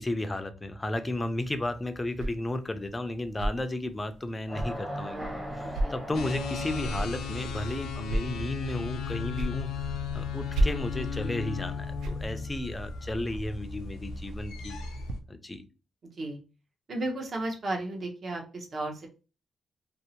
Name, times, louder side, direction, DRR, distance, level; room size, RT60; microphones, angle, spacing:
voice 1, 0.0-14.8 15.3-15.6, left 1 dB, 20° left, 9 dB, 0.4 m, -34 dB
sound 1, 1.1-15.1, right 1 dB, 85° right, 0.3 m, -37 dB
sound 2, 4.5-7.3, equal, 15° right, 0.8 m, -38 dB
voice 2, 5.6-5.9 16.2-16.4 16.9-19.1, right 2 dB, 45° right, 1 dB, 0.8 m, -34 dB
sound 3, 6.1-15.2, left 5 dB, 85° left, 0.4 m, -36 dB
2.6 x 2.0 x 2.8 m, 0.33 s
cardioid pair, 85°, 0 cm